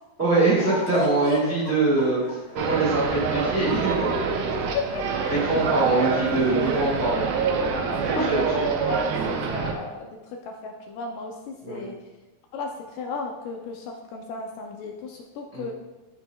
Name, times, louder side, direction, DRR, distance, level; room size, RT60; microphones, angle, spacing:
voice 1, 0.2-2.2 2.5-4.1 5.3-7.3 8.1-8.6 9.2-9.3 11.6-11.9 15.5-15.7, right 2 dB, 30° right, -7 dB, 1.2 m, -23 dB
sound 1, 0.6-7.0, left 1 dB, 55° left, 2.7 m, -37 dB
sound 2, 2.6-9.7, right 5 dB, 90° right, 2.6 m, -26 dB
voice 2, 4.7-5.1 6.8-6.9 7.6-12.0 12.5-15.7, left 4 dB, 80° left, 2 dB, 2.1 m, -34 dB
13.5 x 4.7 x 2.3 m, 1.1 s
omnidirectional pair, 4.1 m